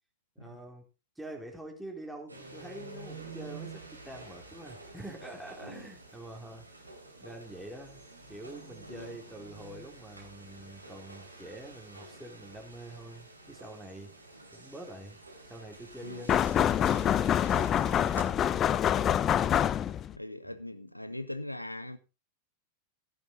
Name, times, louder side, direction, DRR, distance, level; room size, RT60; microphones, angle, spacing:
voice 1, 0.4-0.8 1.2-6.9 7.2-8.0 8.3-14.1 14.5-15.2 15.5-18.4 20.4-20.6, right 1 dB, 5° right, 3.8 m, -46 dB
sound 1, 2.3-18.2, right 3 dB, 85° right, 3.3 m, -49 dB
sound 2, 16.3-20.2, left 10 dB, 30° left, 0.6 m, -26 dB
voice 2, 20.1-22.0, left 1 dB, 90° left, 1.1 m, -41 dB
16.0 x 8.8 x 3.8 m
figure-of-eight pair, 90°, 0 cm